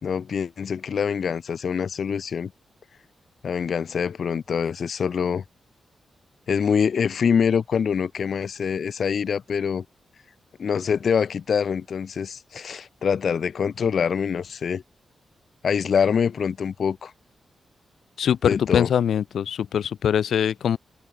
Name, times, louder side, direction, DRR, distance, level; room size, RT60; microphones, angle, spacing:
voice 1, 0.0-2.5 3.4-5.4 6.5-9.8 10.6-14.8 15.6-17.1 18.4-18.9, left 6 dB, 65° left, 3.4 m, -25 dB
voice 2, 18.2-20.8, left 8 dB, 85° left, 1.0 m, -22 dB
open air
wide cardioid pair, 105°, 0 cm